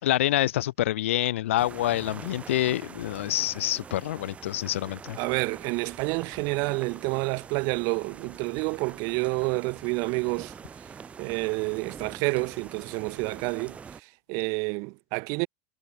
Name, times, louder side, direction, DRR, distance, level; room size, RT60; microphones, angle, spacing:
voice 1, 0.0-5.2, left 14 dB, 85° left, 2.0 m, -27 dB
sound 1, 1.6-14.0, right 6 dB, 20° right, 5.4 m, -45 dB
voice 2, 5.2-10.5 11.2-13.8 14.3-15.5, right 32 dB, 50° right, 1.4 m, -29 dB
supercardioid pair, 140°, 7 cm